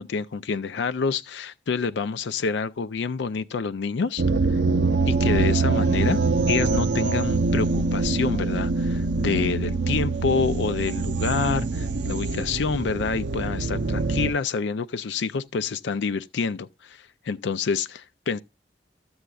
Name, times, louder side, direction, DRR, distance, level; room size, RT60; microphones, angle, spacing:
voice 1, 0.0-4.2 4.5-4.6 5.1-6.2 6.5-18.4, left 5 dB, 85° left, 0.4 m, -27 dB
sound 1, 4.2-14.3, right 3 dB, 85° right, 0.6 m, -24 dB
12.5 x 7.9 x 2.3 m
head